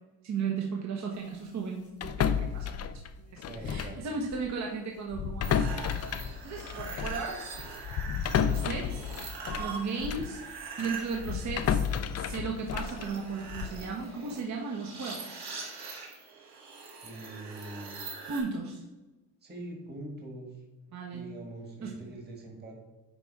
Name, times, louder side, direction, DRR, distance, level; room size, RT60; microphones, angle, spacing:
voice 1, 0.2-2.9 3.2-7.5 8.4-9.0 9.6-10.4 10.8-11.8 12.1-15.3 18.3-18.8 20.9-21.3 21.8-22.0, right 4 dB, 50° right, 1 dB, 1.1 m, -36 dB
sound 1, 2.0-4.1 4.3-4.5 5.1-10.4 10.8-13.9, left 8 dB, 45° left, 0.5 m, -32 dB
voice 2, 3.5-4.1 17.0-18.1 19.4-20.6 21.1-22.8, right 2 dB, 25° right, 1 dB, 1.6 m, -43 dB
sound 2, 5.4-18.4, right 5 dB, 90° right, 2.3 m, -43 dB
9.6 x 3.5 x 4.7 m, 1.1 s
cardioid pair, 110°, 37 cm